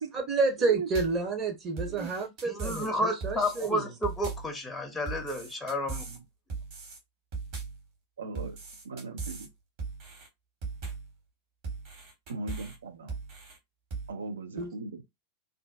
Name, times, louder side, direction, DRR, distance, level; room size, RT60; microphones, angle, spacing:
voice 1, 0.1-3.8 14.6-14.7, right 4 dB, 30° right, 0.8 m, -29 dB
sound 1, 0.9-1.3 1.8-2.9 3.2-3.7 4.0-4.5 5.1-6.2 6.5-7.0 7.3-7.8 8.3-9.5 9.8-10.3 10.6-11.1 11.6-12.8 13.1-13.6 13.9-14.1, right 4 dB, 45° right, 1.4 m, -38 dB
voice 2, 2.4-6.0, left 1 dB, 10° left, 0.6 m, -31 dB
voice 3, 5.8-6.2 8.2-8.6 8.8-9.5 12.3-13.1 14.1-15.1, right 3 dB, 70° right, 0.6 m, -38 dB
2.5 x 2.2 x 2.2 m
figure-of-eight pair, 90°, 0 cm